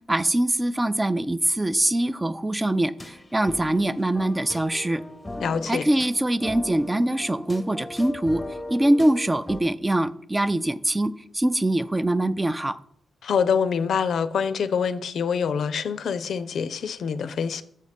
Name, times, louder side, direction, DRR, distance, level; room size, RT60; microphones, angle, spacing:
voice 1, 0.1-5.0 5.7-8.4 8.7-12.8, right 1 dB, 20° right, 0.4 m, -23 dB
sound 1, 3.0-9.6, left 1 dB, 15° left, 0.7 m, -39 dB
voice 2, 5.4-5.9 13.2-17.6, left 6 dB, 75° left, 0.4 m, -25 dB
6.5 x 4.1 x 5.0 m
cardioid pair, 65°, 0 cm